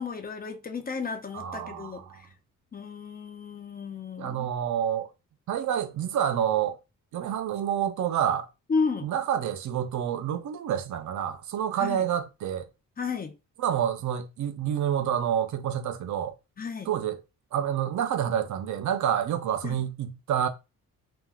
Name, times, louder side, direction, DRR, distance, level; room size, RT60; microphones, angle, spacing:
voice 1, 0.0-2.3 2.7-4.5 8.7-9.1 11.8-12.0 13.0-13.3 16.6-16.9 19.6-19.8, left 5 dB, 30° left, 0.5 m, -32 dB
voice 2, 1.3-2.2 4.2-5.1 5.5-6.8 7.1-8.5 9.0-12.7 13.6-16.3 16.9-17.2 17.5-20.5, right 9 dB, 60° right, 0.5 m, -28 dB
3.3 x 2.2 x 2.3 m
cardioid pair, 85°, 33 cm